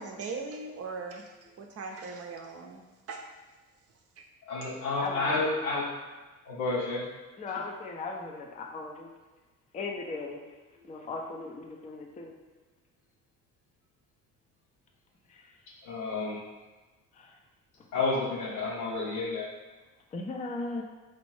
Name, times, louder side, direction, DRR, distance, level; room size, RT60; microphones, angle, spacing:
voice 1, 0.0-3.3 4.2-4.3, right 4 dB, 35° right, 2 dB, 0.6 m, -40 dB
voice 2, 4.5-5.9 6.5-7.0 15.8-16.4 17.9-19.5, left 3 dB, 75° left, -6 dB, 1.3 m, -30 dB
voice 3, 5.0-5.6 6.8-6.9 7.4-9.1 9.7-10.4 10.8-12.3 15.3-15.5 16.0-16.4 17.1-17.4 18.6-18.7 20.1-20.8, left 3 dB, 20° left, 1 dB, 0.5 m, -38 dB
4.2 x 2.5 x 3.3 m, 1.2 s
figure-of-eight pair, 55°, 42 cm